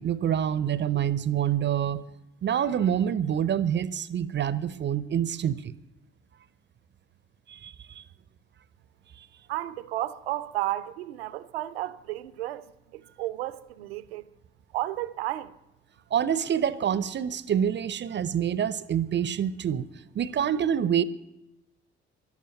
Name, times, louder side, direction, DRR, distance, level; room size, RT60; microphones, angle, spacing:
voice 1, 0.0-2.0 2.4-5.7 7.5-8.0 9.2-9.3 16.1-19.9 20.1-21.0, right 9 dB, 35° right, 0.7 m, -26 dB
voice 2, 9.5-14.2 14.7-15.5, right 15 dB, 75° right, 0.7 m, -33 dB
13.5 x 12.0 x 9.0 m
figure-of-eight pair, 45°, 31 cm